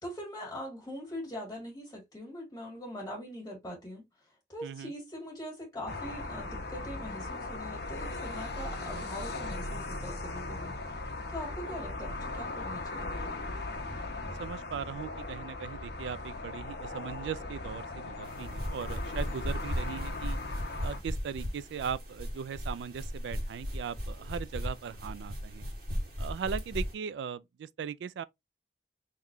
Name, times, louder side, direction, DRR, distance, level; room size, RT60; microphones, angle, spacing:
voice 1, 0.0-4.0 4.5-11.0 11.3-13.1, equal, 15° left, 1.8 m, -42 dB
sound 1, 5.9-21.0, left 2 dB, 65° left, 0.9 m, -38 dB
voice 2, 14.4-20.4 20.8-25.6 26.2-28.2, right 7 dB, 80° right, 0.3 m, -38 dB
sound 2, 18.2-26.9, equal, 60° right, 1.7 m, -36 dB
3.9 x 3.1 x 2.5 m
head